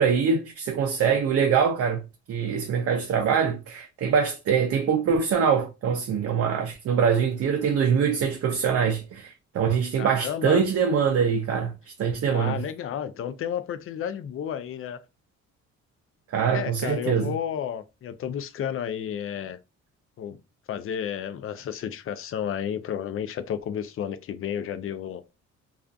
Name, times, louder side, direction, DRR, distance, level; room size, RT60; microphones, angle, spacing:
voice 1, 0.0-12.6 16.3-17.3, right 6 dB, 50° right, 0.4 m, -24 dB
voice 2, 10.0-10.6 12.3-15.0 16.5-19.6 20.2-20.4 20.7-25.2, left 9 dB, 45° left, 0.4 m, -32 dB
2.4 x 2.4 x 2.2 m
cardioid pair, 90°, 30 cm